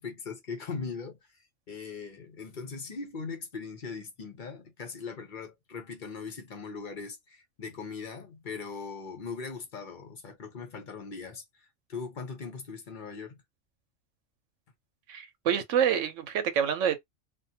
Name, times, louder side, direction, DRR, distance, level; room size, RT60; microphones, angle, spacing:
voice 1, 0.0-13.4, left 5 dB, 45° left, 0.8 m, -40 dB
voice 2, 15.1-17.0, right 8 dB, 80° right, 1.0 m, -27 dB
2.5 x 2.5 x 2.7 m
omnidirectional pair, 1.3 m